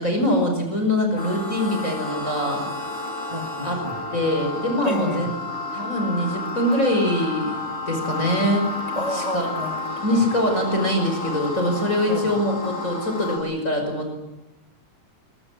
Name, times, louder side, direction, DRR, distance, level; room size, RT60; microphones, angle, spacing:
voice 1, 0.0-2.7 3.6-3.8 4.1-5.3 5.7-7.6 7.9-8.7 9.1-9.5 10.0-14.2, left 1 dB, 20° left, 3 dB, 6.0 m, -23 dB
sound 1, 1.2-13.4, left 2 dB, 75° left, 9.0 m, -31 dB
voice 2, 3.3-4.0 4.8-5.3 8.9-10.2 12.1-12.3, equal, 10° right, 1 dB, 2.7 m, -31 dB
25.0 x 23.0 x 8.7 m, 0.96 s
omnidirectional pair, 3.7 m